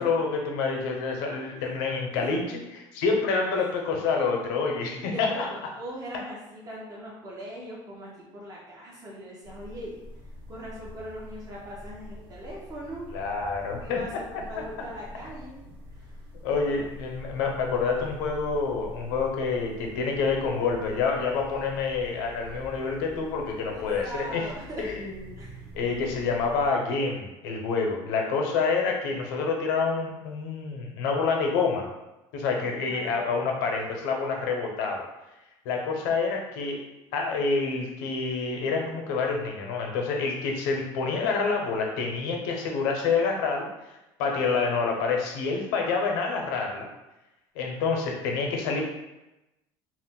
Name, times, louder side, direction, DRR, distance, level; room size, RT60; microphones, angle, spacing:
voice 1, 0.0-2.4 2.7-5.5 13.1-14.0 14.6-14.7 16.4-24.5 24.8-25.4 25.7-31.9 32.3-35.1 35.6-36.8 37.1-46.9 47.5-48.9, left 4 dB, 90° left, 1 dB, 0.6 m, -27 dB
voice 2, 5.0-13.1 13.6-15.6 15.9-16.2 16.6-16.9 23.7-24.9 25.4-25.7 32.6-33.2, equal, 35° right, -5 dB, 0.7 m, -41 dB
sound 1, 9.4-26.7, left 1 dB, 90° right, 0.9 m, -45 dB
2.4 x 2.1 x 3.6 m, 0.96 s
cardioid pair, 120°, 10 cm